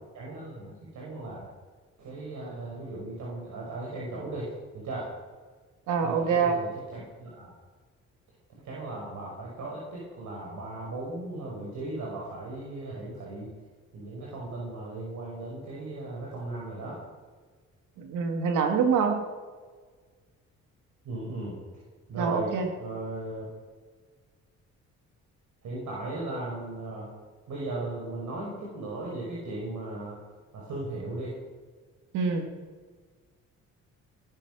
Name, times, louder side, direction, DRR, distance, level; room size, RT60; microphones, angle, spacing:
voice 1, 0.1-1.5 2.0-5.1 6.0-7.5 8.6-13.5 13.9-17.0 21.0-21.6 22.1-22.5 22.8-23.5 25.6-27.1 27.5-30.2 30.5-31.3, right 2 dB, 70° right, -4 dB, 5.5 m, -37 dB
voice 2, 5.9-6.6 18.0-19.2 22.2-22.7 32.1-32.4, right 5 dB, 90° right, 5 dB, 2.3 m, -25 dB
18.5 x 12.5 x 6.2 m, 1.5 s
cardioid pair, 90°, 30 cm